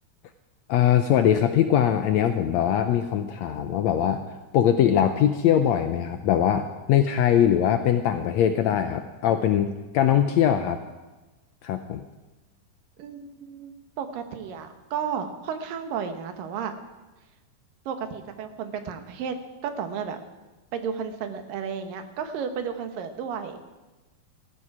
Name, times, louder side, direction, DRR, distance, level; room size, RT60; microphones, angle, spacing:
voice 1, 0.7-4.2 4.5-10.8 11.6-12.0, left 10 dB, 80° left, 8 dB, 1.6 m, -22 dB
voice 2, 13.0-13.7 14.0-16.7 17.9-19.4 19.6-20.2 20.7-23.6, right 7 dB, 85° right, 7 dB, 2.9 m, -33 dB
18.0 x 14.0 x 4.8 m, 1.1 s
omnidirectional pair, 3.8 m